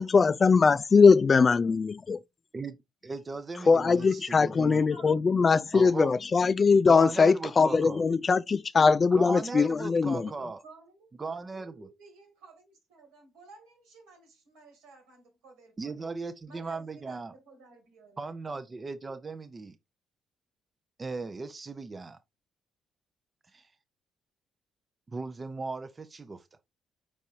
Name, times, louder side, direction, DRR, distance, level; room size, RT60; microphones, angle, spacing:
voice 1, 0.0-2.2 3.7-10.3, left 5 dB, 40° left, 0.3 m, -21 dB
voice 2, 3.0-4.8 5.7-6.2 6.9-8.0 9.1-10.6 11.2-11.9 15.8-17.3 18.2-19.8 21.0-22.2 23.5-23.7 25.1-26.5, right 3 dB, 35° right, 0.6 m, -37 dB
voice 3, 3.8-5.1 7.0-7.9 10.1-16.1 16.5-18.3, right 3 dB, 85° right, 2.1 m, -54 dB
4.8 x 4.2 x 2.6 m
hypercardioid pair, 55°, 0 cm